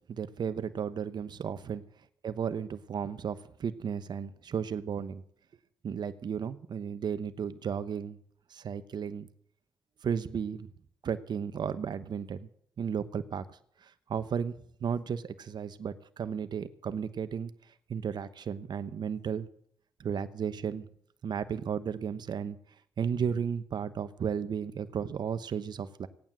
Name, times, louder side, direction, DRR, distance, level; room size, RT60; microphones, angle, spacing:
voice 1, 0.1-1.8 2.2-5.2 5.8-8.2 8.5-9.3 10.0-10.7 11.0-12.5 12.8-13.4 13.8-14.5 14.8-17.5 17.9-19.5 20.0-20.9 21.2-22.6 23.0-26.1, right 7 dB, 65° right, 12 dB, 1.0 m, -34 dB
17.0 x 9.3 x 7.4 m, 0.66 s
cardioid pair, 65°, 8 cm